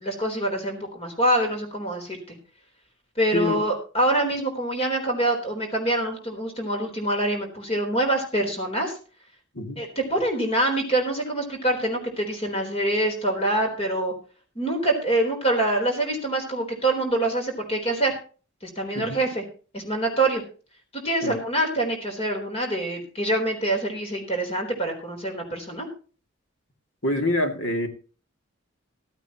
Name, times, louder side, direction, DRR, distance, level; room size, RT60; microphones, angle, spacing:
voice 1, 0.0-2.4 3.2-9.0 9.8-14.1 14.6-18.1 18.6-19.4 19.7-20.4 20.9-25.9, right 1 dB, 30° left, 2 dB, 3.8 m, -25 dB
voice 2, 27.0-27.9, left 1 dB, 65° left, 4 dB, 2.6 m, -25 dB
15.0 x 13.0 x 3.0 m, 0.37 s
head